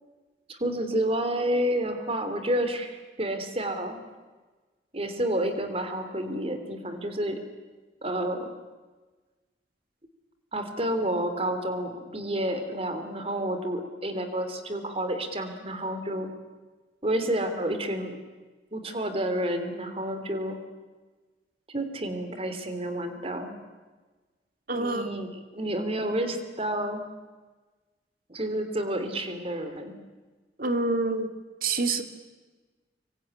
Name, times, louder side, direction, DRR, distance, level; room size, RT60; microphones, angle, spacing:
voice 1, 0.5-4.0 4.9-7.4 8.0-8.5 10.5-16.3 17.0-18.2 18.7-20.6 21.7-23.5 24.7-25.3 25.5-27.0 28.3-29.9, right 1 dB, 30° right, 8 dB, 3.1 m, -30 dB
voice 2, 24.7-25.1 30.6-31.3 31.6-32.0, right 3 dB, 50° right, 8 dB, 2.3 m, -26 dB
25.5 x 23.5 x 9.9 m, 1.3 s
head